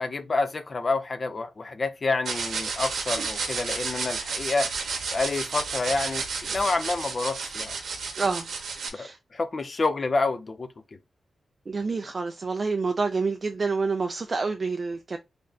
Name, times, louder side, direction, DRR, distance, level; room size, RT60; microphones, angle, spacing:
voice 1, 0.0-4.7 5.1-7.8 8.9-10.7, left 3 dB, 35° left, 0.5 m, -28 dB
sound 1, 2.2-8.9, right 4 dB, 90° right, 0.8 m, -31 dB
voice 2, 8.2-8.5 8.9-9.2 11.7-15.2, right 4 dB, 35° right, 0.3 m, -28 dB
3.3 x 2.4 x 3.9 m
wide cardioid pair, 160°, 0 cm